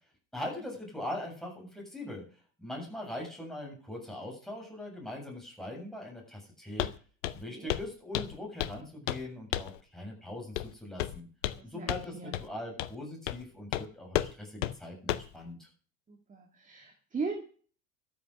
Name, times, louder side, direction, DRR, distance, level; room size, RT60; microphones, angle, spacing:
voice 1, 0.3-2.2 2.6-6.9 7.3-11.3 11.6-12.1 12.4-15.7, left 1 dB, ahead, -1 dB, 7.6 m, -41 dB
Walk footsteps, 6.8-7.0 7.2-7.4 7.7-7.9 8.1-8.8 9.1-9.2 9.5-9.8 10.6-10.7 11.0-11.6 11.9-12.0 12.3-12.4 12.8-12.9 13.3-13.4 13.7-13.8 14.1-14.3 14.6-14.7 15.1-15.3, left 13 dB, 65° left, 0.9 m, -32 dB
voice 2, 7.4-7.8 11.5-12.4 16.1-17.4, right 4 dB, 20° right, 3 dB, 2.3 m, -39 dB
13.0 x 7.9 x 6.5 m, 0.41 s
figure-of-eight pair, 75°, 39 cm